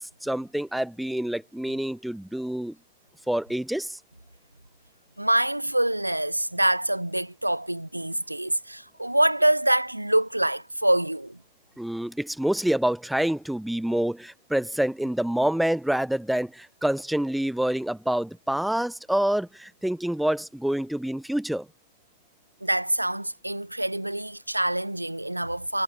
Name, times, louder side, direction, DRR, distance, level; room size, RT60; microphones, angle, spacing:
voice 1, 0.0-2.7 3.3-4.0 11.8-21.7, right 1 dB, ahead, 2.3 m, -27 dB
voice 2, 5.2-11.4 22.6-25.8, right 1 dB, 85° right, 2.2 m, -25 dB
figure-of-eight pair, 90°, 0 cm